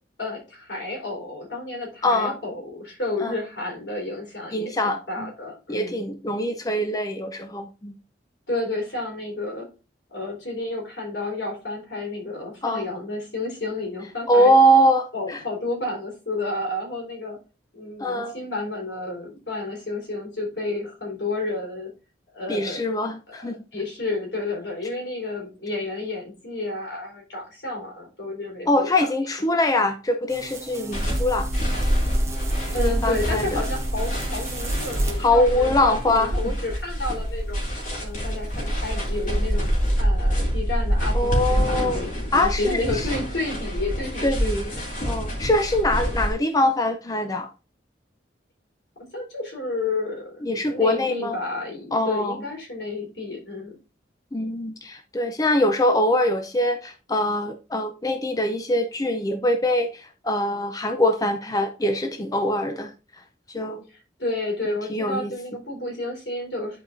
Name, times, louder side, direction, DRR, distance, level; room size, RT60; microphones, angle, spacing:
voice 1, 0.2-6.0 8.5-9.7 10.1-14.5 15.1-17.4 17.7-21.9 22.3-22.8 23.3-29.1 32.7-37.6 38.0-39.7 40.0-44.5 49.1-53.8 63.9-66.8, left 2 dB, 75° left, 0 dB, 3.7 m, -31 dB
voice 2, 2.0-2.4 3.2-3.3 4.5-5.3 5.7-8.0 12.6-12.8 14.3-15.4 18.0-18.3 22.5-23.6 28.7-31.5 32.8-33.6 35.2-36.5 41.1-42.0 42.3-43.1 44.2-44.7 45.1-47.5 50.4-51.4 51.9-52.4 54.3-62.9 63.5-63.8 64.6-65.3, left 1 dB, 20° left, 6 dB, 0.6 m, -23 dB
sound 1, 30.3-39.9, right 2 dB, 15° right, 0.9 m, -40 dB
sound 2, 30.9-46.3, equal, 50° left, 2.7 m, -26 dB
10.5 x 4.6 x 2.6 m, 0.32 s
head